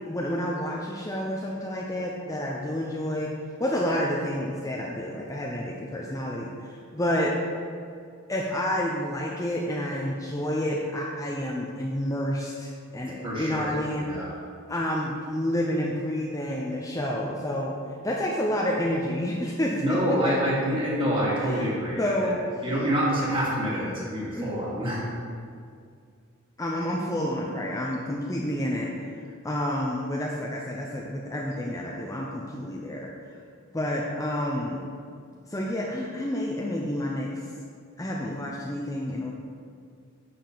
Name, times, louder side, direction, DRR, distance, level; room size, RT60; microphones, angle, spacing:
voice 1, 0.1-7.4 8.3-14.1 14.7-17.8 18.0-20.0 21.4-21.7 22.0-22.4 24.3-24.5 26.6-28.9 29.4-33.1 33.7-34.9 35.5-37.4 38.0-39.3, left 1 dB, 15° left, -2 dB, 0.6 m, -29 dB
voice 2, 13.2-14.4 19.8-22.1 22.6-25.1, equal, 25° right, -6 dB, 2.3 m, -27 dB
10.0 x 6.8 x 4.0 m, 2.2 s
head